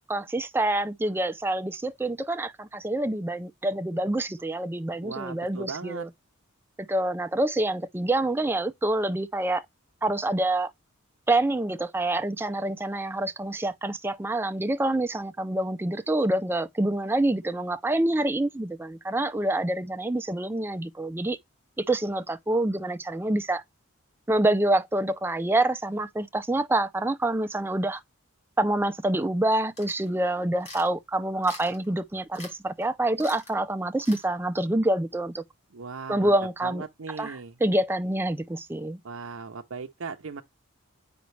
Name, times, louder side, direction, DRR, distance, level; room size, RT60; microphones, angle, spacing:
voice 1, 0.1-6.1 6.9-9.6 10.0-10.7 11.3-21.4 21.8-23.6 24.3-28.0 28.6-35.4 36.1-36.8 37.2-39.0, right 1 dB, 10° right, 0.4 m, -26 dB
voice 2, 5.0-6.1 35.7-36.4 36.6-37.6 39.0-40.4, right 4 dB, 80° right, 0.7 m, -38 dB
sound 1, 29.8-30.1 30.6-30.9 31.4-31.9 32.3-32.5 32.8-32.9 33.2-33.5 34.0-34.2, left 2 dB, 30° left, 2.5 m, -43 dB
8.1 x 5.1 x 3.2 m
head